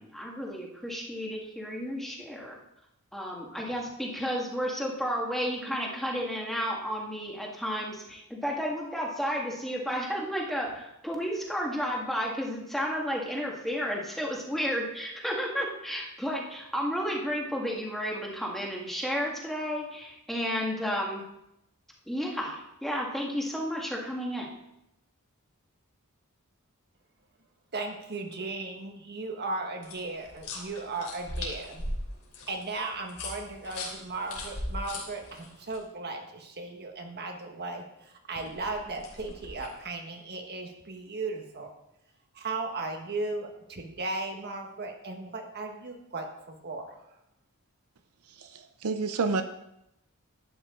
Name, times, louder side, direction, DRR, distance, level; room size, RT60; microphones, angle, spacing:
voice 1, 0.0-2.6 3.1-21.2 22.1-24.5, equal, ahead, -2 dB, 1.9 m, -32 dB
voice 2, 27.7-31.9 32.5-41.7 42.3-47.0, right 3 dB, 50° right, 3 dB, 1.5 m, -36 dB
sound 1, 29.8-35.8 38.3-39.8, left 2 dB, 80° left, 3.1 m, -39 dB
voice 3, 48.4-49.4, right 4 dB, 80° right, 9 dB, 0.7 m, -29 dB
11.5 x 9.1 x 3.8 m, 0.84 s
head